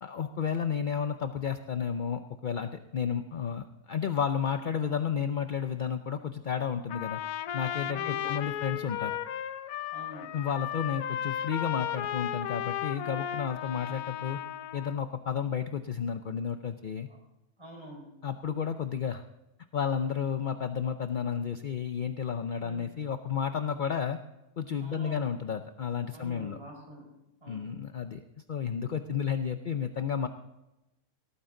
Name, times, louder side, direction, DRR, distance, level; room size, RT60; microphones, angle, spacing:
voice 1, 0.0-7.2 7.5-9.2 10.3-14.4 14.7-17.1 18.2-19.2 19.7-24.2 24.6-26.6 27.5-30.3, left 7 dB, 55° left, 8 dB, 0.5 m, -32 dB
Trumpet, 6.9-15.0, left 11 dB, 75° left, 1.2 m, -35 dB
voice 2, 7.9-8.6 9.9-10.3 17.1-17.2 17.6-18.2 22.6-22.9 24.8-25.3 26.1-27.7, right 1 dB, 15° right, 0 dB, 5.2 m, -47 dB
18.0 x 14.0 x 3.8 m, 0.95 s
omnidirectional pair, 1.6 m